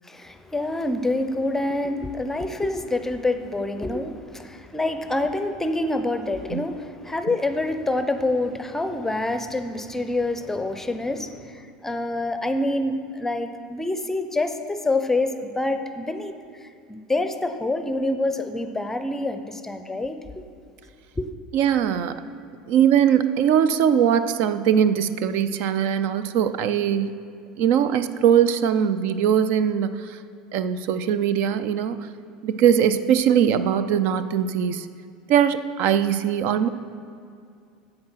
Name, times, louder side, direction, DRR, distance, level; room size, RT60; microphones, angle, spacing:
voice 1, 0.1-16.3 16.9-20.2 21.2-21.3, left 2 dB, 10° left, 9 dB, 0.6 m, -26 dB
voice 2, 21.5-22.2 22.7-27.1 27.6-30.2 30.5-32.1 32.4-34.9 35.3-36.7, right 9 dB, 60° right, 13 dB, 0.4 m, -21 dB
8.7 x 7.7 x 5.7 m, 2.3 s
hypercardioid pair, 85°, 4 cm